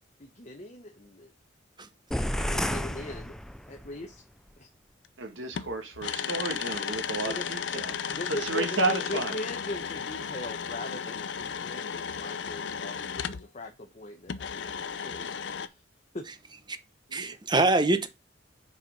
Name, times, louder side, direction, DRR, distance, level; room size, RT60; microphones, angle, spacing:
voice 1, 0.2-1.3 2.2-3.3 3.7-4.2 4.6-4.7 7.2-7.5 8.1-15.7 16.1-16.3, left 2 dB, 35° left, 1.1 m, -40 dB
sound 1, 2.1-4.0, equal, 5° left, 0.4 m, -31 dB
sound 2, 5.0-5.1 5.5-13.5 14.3-15.7, left 7 dB, 65° left, 0.6 m, -34 dB
voice 2, 5.2-9.4 17.1-17.3, right 3 dB, 75° right, 1.6 m, -32 dB
voice 3, 17.1-18.1, right 2 dB, 25° right, 0.8 m, -25 dB
6.6 x 4.7 x 5.2 m
head